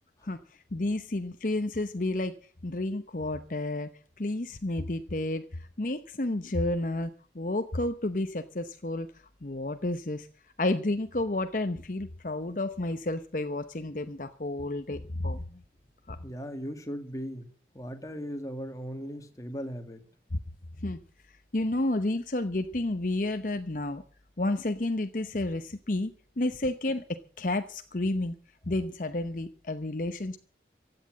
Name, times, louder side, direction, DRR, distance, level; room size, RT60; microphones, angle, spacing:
voice 1, 0.7-2.3 2.6-3.9 4.2-9.1 9.4-10.3 10.6-15.6 16.1-16.2 20.3-20.4 20.8-21.0 21.5-24.0 24.4-28.4 28.7-30.4, left 2 dB, 50° left, 9 dB, 0.9 m, -31 dB
voice 2, 16.2-17.5 17.7-20.0, equal, 20° left, 6 dB, 2.0 m, -38 dB
16.0 x 9.8 x 7.5 m, 0.42 s
head